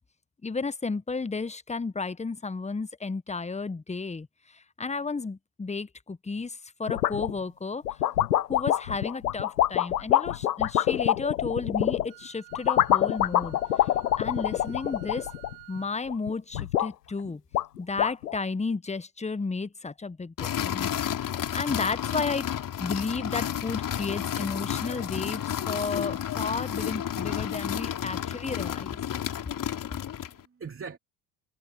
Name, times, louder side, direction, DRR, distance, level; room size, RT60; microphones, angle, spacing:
voice 1, 0.4-4.3 4.8-7.8 8.5-13.6 14.2-15.3 15.7-17.4 17.8-20.9 21.5-22.4 22.8-29.0, left 4 dB, 15° left, 1.4 m, -33 dB
sound 1, 6.9-7.4 7.8-12.1 12.5-15.8 16.1-16.9 17.3-17.4 17.5-18.4, left 12 dB, 80° left, 1.2 m, -25 dB
Wind instrument woodwind instrument, 12.1-15.9, right 30 dB, 70° right, 4.2 m, -52 dB
sound 2, 20.4-30.4, left 10 dB, 45° left, 2.9 m, -31 dB
voice 2, 29.1-31.0, right 5 dB, 25° right, 3.0 m, -45 dB
figure-of-eight pair, 55°, 47 cm